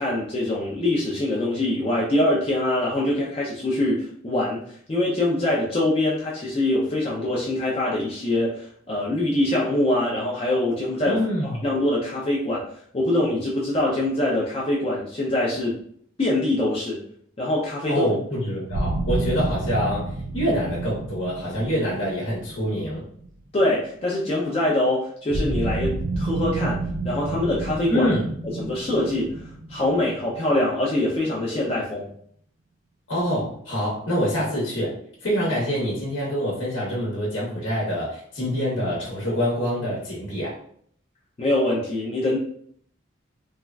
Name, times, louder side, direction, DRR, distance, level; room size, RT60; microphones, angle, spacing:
voice 1, 0.0-4.6 4.9-12.6 12.9-15.7 16.2-17.0 17.4-18.1 23.5-28.1 28.4-32.1 41.4-42.4, left 1 dB, 30° left, -4 dB, 0.4 m, -24 dB
voice 2, 11.0-11.6 17.9-23.0 27.9-28.3 33.1-40.6, equal, 75° left, -5 dB, 0.9 m, -26 dB
sound 1, 18.7-23.7 25.3-31.0, right 2 dB, 85° right, 0.4 m, -29 dB
3.2 x 2.3 x 2.2 m, 0.63 s
head